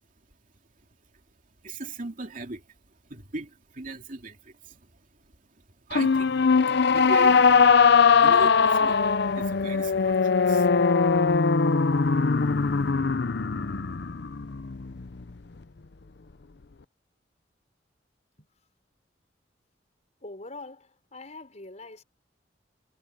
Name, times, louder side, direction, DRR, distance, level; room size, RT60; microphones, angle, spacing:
voice 1, 1.6-2.8 3.1-5.3 5.9-6.6 6.9-7.7 8.2-9.0 9.3-10.7, right 2 dB, 50° right, 2.7 m, -38 dB
sound 1, 5.9-15.3, left 5 dB, 65° left, 0.7 m, -21 dB
voice 2, 20.2-22.0, left 2 dB, 40° left, 5.2 m, -43 dB
head